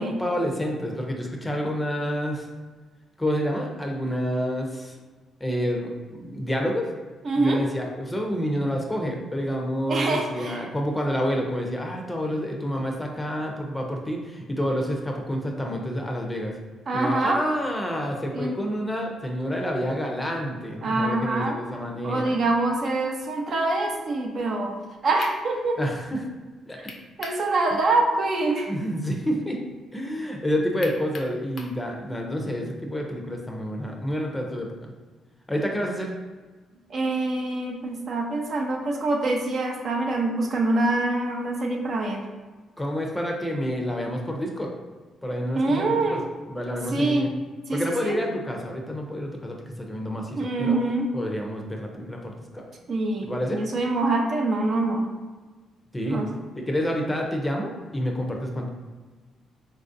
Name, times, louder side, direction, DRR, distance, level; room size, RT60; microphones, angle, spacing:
voice 1, 0.0-2.5 3.2-4.9 5.4-6.9 7.3-16.5 16.9-22.3 25.8-26.3 26.7-26.9 27.7-27.8 28.7-29.6 29.9-34.9 35.5-36.1 42.8-44.7 45.2-46.2 46.5-47.3 47.7-50.8 51.1-52.6 53.3-53.6 55.9-56.2 56.6-58.7, equal, 10° left, 1 dB, 0.6 m, -28 dB
voice 2, 7.2-7.6 9.9-10.6 16.9-17.4 18.3-18.6 20.8-21.6 22.0-24.7 25.0-25.8 27.2-28.7 36.9-42.2 45.5-46.2 46.9-47.3 47.7-48.2 50.3-51.1 52.9-55.1 56.1-56.3, right 2 dB, 50° right, 1 dB, 0.6 m, -25 dB
sound 1, 25.2-25.4 26.9-27.4 27.8-27.9 30.8-31.8, left 3 dB, 55° left, 0.5 m, -39 dB
4.0 x 2.5 x 2.5 m, 1.3 s
cardioid pair, 90°, 0 cm